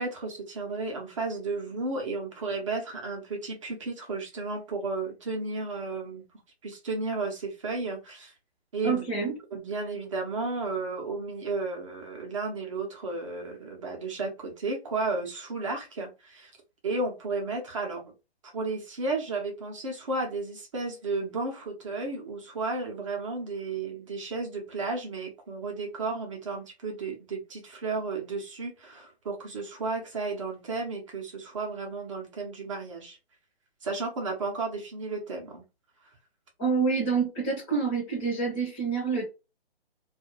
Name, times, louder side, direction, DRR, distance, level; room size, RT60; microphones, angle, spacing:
voice 1, 0.0-6.2 6.6-8.3 8.7-9.0 9.5-16.5 16.8-18.1 18.4-33.2 33.8-35.6, right 3 dB, 30° right, 0.6 m, -33 dB
voice 2, 8.8-9.3 36.6-39.3, right 5 dB, 15° left, 0.7 m, -27 dB
2.3 x 2.1 x 3.1 m
figure-of-eight pair, 145°, 32 cm